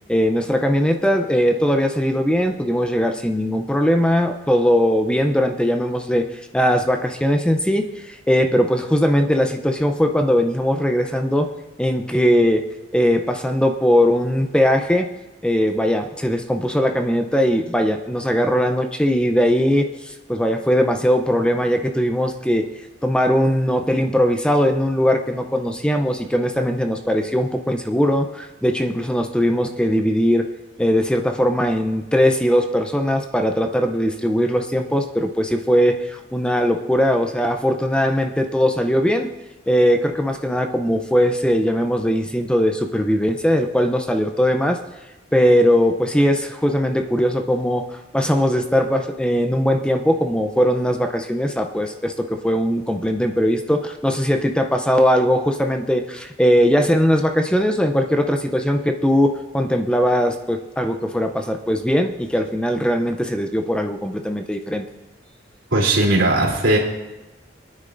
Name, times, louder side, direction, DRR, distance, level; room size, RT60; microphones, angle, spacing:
voice 1, 0.1-11.5 11.8-12.6 12.9-15.1 15.4-22.7 23.0-30.5 30.8-39.3 39.7-44.8 45.3-64.8, equal, 5° left, 5 dB, 0.5 m, -20 dB
voice 2, 65.7-66.8, right 2 dB, 85° right, -3 dB, 3.1 m, -17 dB
21.5 x 9.9 x 2.6 m, 1.1 s
head